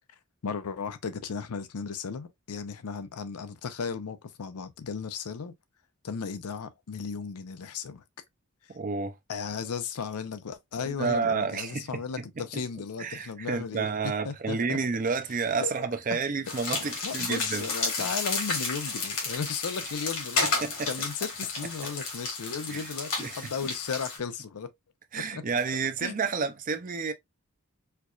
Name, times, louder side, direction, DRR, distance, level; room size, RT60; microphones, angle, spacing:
voice 1, 0.4-5.5 6.0-8.0 9.3-13.9 14.3-14.8 15.6-15.7 17.0-20.4 20.9-24.7 25.1-25.4 26.0-26.2, left 5 dB, 85° left, 0.5 m, -35 dB
voice 2, 8.7-9.1 10.8-12.3 12.5-12.6 13.0-17.7 18.0-18.1 20.4-20.9 22.7-22.9 23.2-23.5 25.1-27.1, right 5 dB, 35° right, 0.5 m, -30 dB
sound 1, 16.5-24.2, left 4 dB, 60° left, 1.8 m, -32 dB
4.5 x 2.5 x 2.3 m
head